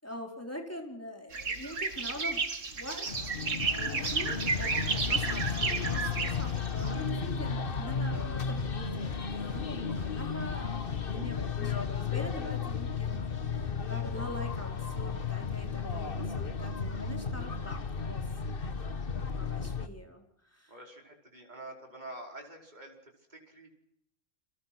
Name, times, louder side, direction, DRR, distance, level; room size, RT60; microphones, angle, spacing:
voice 1, 0.0-4.8 5.1-10.7 11.0-18.2 19.4-20.8, left 1 dB, 10° left, 3 dB, 4.5 m, -44 dB
sound 1, 1.3-6.9, right 4 dB, 80° right, 2.4 m, -32 dB
sound 2, 3.1-19.9, left 5 dB, 45° left, 1.5 m, -34 dB
voice 2, 20.7-23.7, right 1 dB, 35° right, 1 dB, 5.2 m, -47 dB
30.0 x 25.0 x 6.1 m, 0.78 s
omnidirectional pair, 1.3 m